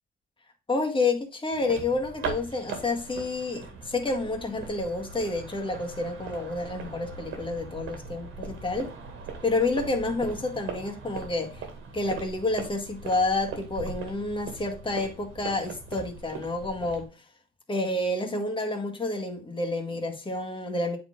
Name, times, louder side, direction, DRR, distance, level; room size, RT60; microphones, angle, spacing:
voice 1, 0.7-8.9 9.4-11.6 11.9-17.2 17.7-21.0, left 2 dB, 25° left, 1.8 m, -29 dB
heels on city sidewalk, 1.5-17.0, right 5 dB, 90° right, 2.1 m, -40 dB
8.6 x 4.3 x 3.7 m
cardioid pair, 90°, 20 cm